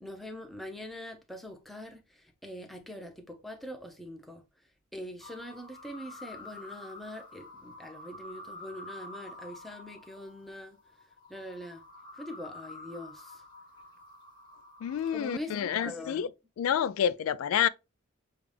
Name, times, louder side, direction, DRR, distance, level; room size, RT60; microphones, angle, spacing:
voice 1, 0.0-4.4 4.9-10.8 11.3-11.8 12.1-13.4 15.1-16.2, left 1 dB, ahead, 0.7 m, -43 dB
sound 1, 5.2-15.3, left 2 dB, 20° left, 1.3 m, -48 dB
voice 2, 14.8-16.3 16.6-17.7, left 9 dB, 85° left, 0.3 m, -28 dB
6.7 x 2.4 x 3.3 m
head